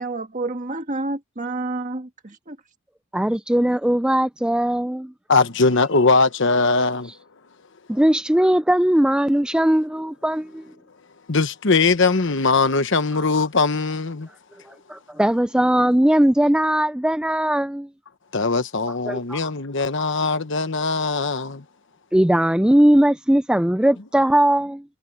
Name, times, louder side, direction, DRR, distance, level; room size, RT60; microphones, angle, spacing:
voice 1, 0.0-2.6, right 2 dB, 35° right, 1.7 m, -29 dB
voice 2, 3.1-5.1 7.9-10.6 14.7-17.9 19.1-19.4 22.1-24.8, right 1 dB, 5° right, 0.3 m, -19 dB
voice 3, 5.3-7.1 11.3-14.3 18.3-21.6, left 3 dB, 55° left, 1.1 m, -20 dB
head